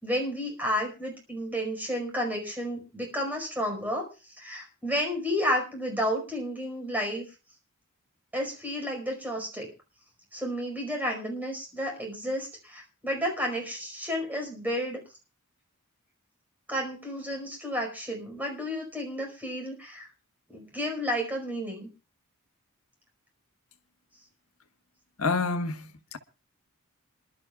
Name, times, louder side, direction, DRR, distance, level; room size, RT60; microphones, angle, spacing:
voice 1, 0.0-7.2 8.3-9.7 10.3-15.0 16.7-20.1 20.5-21.9, equal, 10° right, 4.9 m, -31 dB
voice 2, 25.2-26.2, left 4 dB, 70° left, 1.4 m, -28 dB
28.0 x 12.0 x 2.4 m
head